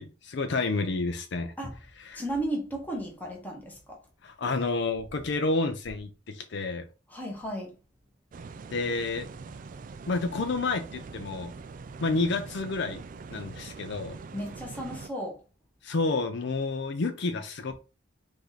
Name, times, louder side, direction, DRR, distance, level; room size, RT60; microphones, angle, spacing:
voice 1, 0.0-1.5 2.1-2.2 4.2-6.9 8.7-9.3 10.1-11.5 12.0-13.0 13.3-14.2 15.8-17.7, left 3 dB, 55° left, 0.5 m, -29 dB
voice 2, 2.1-4.0 7.1-7.8 13.3-13.4 14.3-15.4, right 1 dB, 10° left, 1.2 m, -34 dB
sound 1, 8.3-15.1, right 4 dB, 40° right, 0.3 m, -43 dB
4.8 x 2.7 x 4.0 m
head